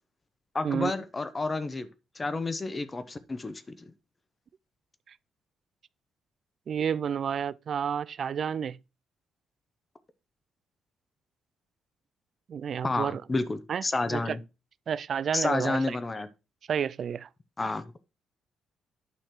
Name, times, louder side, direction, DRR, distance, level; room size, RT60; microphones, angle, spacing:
voice 1, 0.5-1.9 2.2-3.8 12.8-14.4 15.3-16.3 17.6-17.9, left 3 dB, 25° left, 0.8 m, -30 dB
voice 2, 6.7-8.8 12.5-13.2 13.7-14.4 14.9-16.0 16.7-17.3, right 8 dB, 55° right, 0.3 m, -30 dB
9.1 x 3.2 x 5.9 m
cardioid pair, 90°, 0 cm